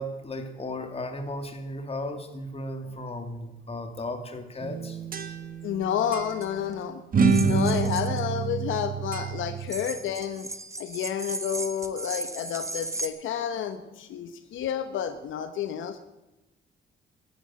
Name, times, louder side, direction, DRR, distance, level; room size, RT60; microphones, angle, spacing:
voice 1, 0.0-5.0 5.3-5.4, left 1 dB, 30° left, 6 dB, 2.5 m, -35 dB
sound 1, 4.6-5.8 6.1-6.3 7.1-9.7, right 5 dB, 45° right, 1.7 m, -26 dB
voice 2, 5.6-7.0 7.4-10.5 10.8-16.0, left 9 dB, 80° left, 9 dB, 1.0 m, -30 dB
sound 2, 6.3-6.5 7.3-8.2 9.6-13.1, right 2 dB, 15° right, 1.1 m, -36 dB
13.5 x 11.5 x 7.6 m, 1.0 s
cardioid pair, 90°, 20 cm